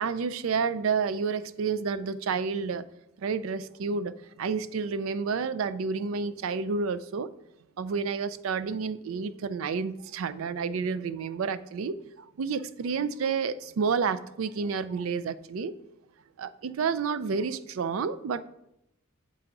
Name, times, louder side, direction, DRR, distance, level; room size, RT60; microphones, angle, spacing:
voice 1, 0.0-2.9 3.2-7.3 7.8-15.7 16.4-18.4, right 5 dB, 70° right, 14 dB, 0.4 m, -30 dB
7.5 x 4.7 x 3.8 m, 0.85 s
head